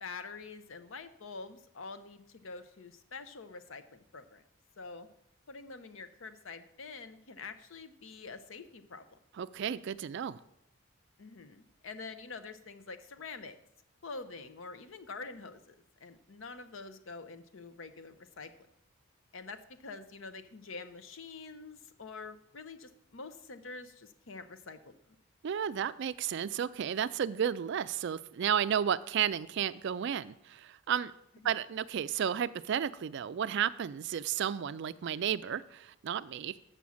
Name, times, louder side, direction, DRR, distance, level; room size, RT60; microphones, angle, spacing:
voice 1, 0.0-4.4 4.8-5.1 5.5-9.2 11.2-13.6 14.0-15.7 16.0-18.7 19.3-24.9 31.4-31.5, left 4 dB, 65° left, 11 dB, 0.7 m, -46 dB
voice 2, 9.4-10.4 25.4-31.1 31.4-36.6, right 8 dB, 55° right, 16 dB, 0.3 m, -32 dB
6.9 x 6.2 x 7.1 m, 0.77 s
head